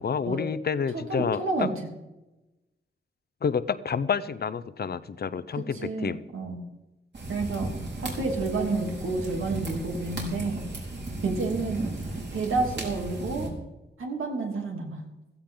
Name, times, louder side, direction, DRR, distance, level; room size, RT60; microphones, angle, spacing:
voice 1, 0.0-1.4 3.4-6.2, left 6 dB, 50° left, 15 dB, 0.7 m, -29 dB
voice 2, 0.9-1.7 5.7-6.6 7.3-7.7 8.0-10.6 11.2-11.8 12.1-13.5 14.0-15.0, right 3 dB, 90° right, 1 dB, 3.1 m, -30 dB
sound 1, 7.1-13.5, right 2 dB, 55° right, 4.4 m, -35 dB
16.0 x 14.5 x 3.9 m, 0.99 s
wide cardioid pair, 105°, 21 cm